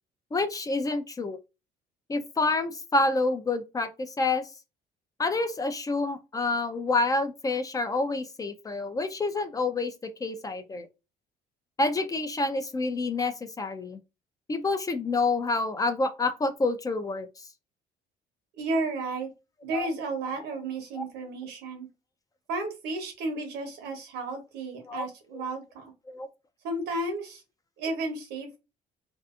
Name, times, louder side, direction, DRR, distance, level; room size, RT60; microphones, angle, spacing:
voice 1, 0.3-1.4 2.1-4.5 5.2-9.9 10.2-10.9 11.8-14.0 14.5-17.3 19.7-19.9 21.0-21.1 24.9-25.1 25.3-25.4 26.1-26.3, left 3 dB, 20° left, 0.3 m, -28 dB
voice 2, 18.6-19.3 19.6-21.9 22.5-25.9 26.6-27.4 27.8-28.6, right 2 dB, 85° right, 1.0 m, -33 dB
2.6 x 2.4 x 2.3 m
cardioid pair, 110°, 17 cm